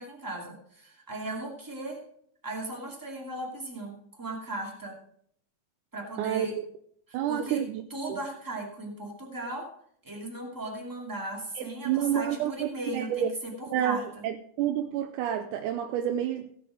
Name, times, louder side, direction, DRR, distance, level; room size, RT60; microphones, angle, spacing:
voice 1, 0.0-2.0 2.4-5.0 5.9-6.6 7.1-7.6 7.9-9.7 10.0-14.3, right 1 dB, 5° right, 1.9 m, -37 dB
voice 2, 6.2-6.5 7.1-7.8 8.1-8.2 11.6-13.3 13.7-16.5, right 10 dB, 80° right, 2.0 m, -29 dB
16.5 x 6.3 x 5.1 m
omnidirectional pair, 3.8 m